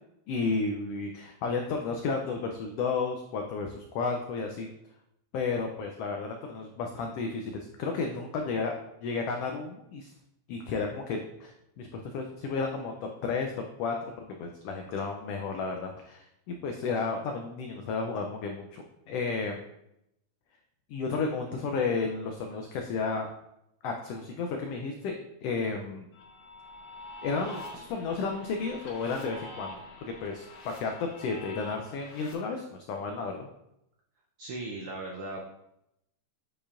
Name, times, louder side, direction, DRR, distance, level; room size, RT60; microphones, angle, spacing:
voice 1, 0.3-4.7 5.3-8.7 9.0-10.1 10.5-19.6 20.9-23.3 23.8-25.1 25.4-26.1 27.2-33.5, left 4 dB, 90° left, 3 dB, 1.3 m, -32 dB
sound 1, 26.1-32.3, left 2 dB, 55° left, 1.1 m, -46 dB
voice 2, 34.4-35.4, right 2 dB, 85° right, -1 dB, 1.2 m, -37 dB
8.4 x 5.0 x 2.4 m, 0.82 s
omnidirectional pair, 3.4 m